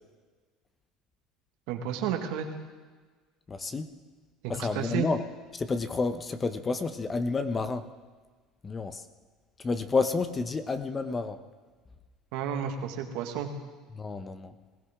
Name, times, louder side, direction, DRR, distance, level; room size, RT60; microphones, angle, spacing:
voice 1, 1.7-2.5 4.4-5.1 12.3-13.5, right 8 dB, 75° right, 4 dB, 1.9 m, -32 dB
voice 2, 3.5-3.9 4.5-5.2 5.5-7.9 8.6-9.0 9.6-11.4 13.9-14.5, left 4 dB, 25° left, 10 dB, 1.0 m, -30 dB
20.5 x 16.0 x 3.7 m, 1.4 s
supercardioid pair, 110°, 0 cm